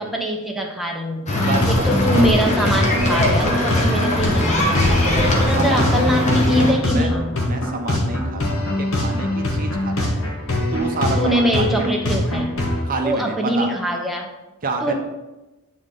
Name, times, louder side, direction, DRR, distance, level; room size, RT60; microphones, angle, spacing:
voice 1, 0.0-1.3 1.7-5.0 5.4-7.2 11.2-12.5 13.0-14.3 14.8-14.9, equal, ahead, 0 dB, 0.7 m, -22 dB
sound 1, 1.3-12.8, left 1 dB, 70° left, 1.4 m, -23 dB
sound 2, 1.3-6.7, left 1 dB, 35° left, 1.1 m, -21 dB
voice 2, 1.5-1.9 5.3-5.9 6.9-7.1 7.4-10.2 10.7-11.9 12.8-13.7 14.6-14.9, right 3 dB, 40° right, 4 dB, 0.6 m, -28 dB
8.5 x 3.7 x 3.7 m, 1.1 s
head